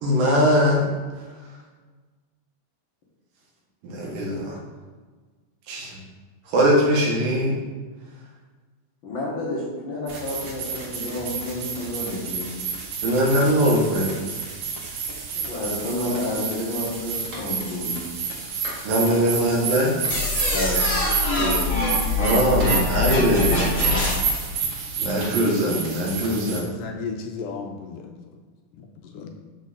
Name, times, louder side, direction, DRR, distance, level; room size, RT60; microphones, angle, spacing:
voice 1, 0.0-0.9 3.8-4.6 5.7-5.9 6.5-7.5 13.0-14.1 18.8-20.0 22.1-24.0 25.0-26.7, equal, 85° right, -2 dB, 3.1 m, -21 dB
voice 2, 9.0-12.5 15.3-18.0 20.5-20.9 21.3-22.0 25.2-25.7, left 1 dB, 55° left, -6 dB, 1.4 m, -30 dB
sound 1, 10.1-26.6, right 5 dB, 65° right, 1.6 m, -30 dB
Clapping, 17.3-17.5 18.6-18.9 20.0-20.2 21.3-21.6 22.6-23.0 23.9-24.5 25.2-25.4, equal, 40° right, 1.1 m, -38 dB
sound 2, 20.1-24.5, left 2 dB, 20° left, 0.9 m, -24 dB
voice 3, 26.2-28.1 28.8-29.3, left 5 dB, 75° left, 3 dB, 2.0 m, -35 dB
6.4 x 6.2 x 4.1 m, 1.4 s
omnidirectional pair, 3.9 m